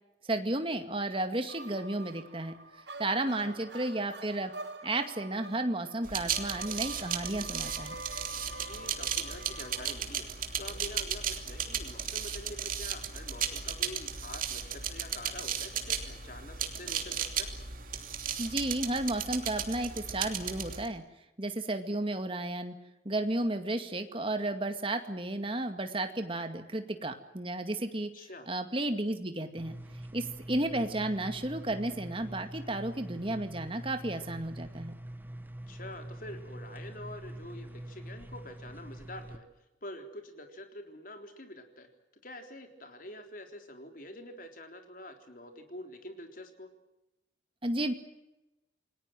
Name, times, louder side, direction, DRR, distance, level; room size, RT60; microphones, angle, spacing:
voice 1, 0.2-2.5 3.0-4.5 4.8-8.0 18.4-21.0 21.4-22.7 23.0-28.1 28.5-29.8 30.1-34.9 47.6-47.9, right 1 dB, 30° right, 7 dB, 2.1 m, -33 dB
sound 1, 1.5-10.0, right 2 dB, 70° right, 1.8 m, -46 dB
voice 2, 3.2-3.6 8.6-10.3 10.6-17.5 28.1-28.5 35.7-41.9 42.2-46.7, left 1 dB, 50° left, 5 dB, 3.7 m, -46 dB
sound 2, 6.0-20.9, right 8 dB, 50° right, 2.9 m, -35 dB
sound 3, 29.6-39.4, right 1 dB, 10° right, 1.4 m, -44 dB
28.5 x 20.0 x 7.7 m, 0.97 s
head